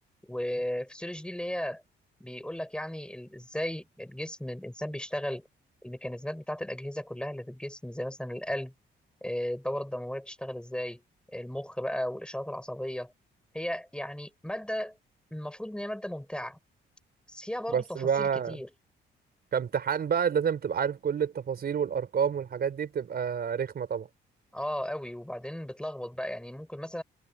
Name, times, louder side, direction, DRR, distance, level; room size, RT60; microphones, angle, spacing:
voice 1, 0.2-1.8 2.2-5.5 5.8-8.7 9.2-11.0 11.3-13.1 13.5-15.0 15.3-16.6 17.3-18.7 24.5-27.0, equal, 5° left, 5.0 m, -35 dB
voice 2, 17.7-18.6 19.5-24.1, right 7 dB, 50° right, 4.2 m, -29 dB
cardioid pair, 90°, 20 cm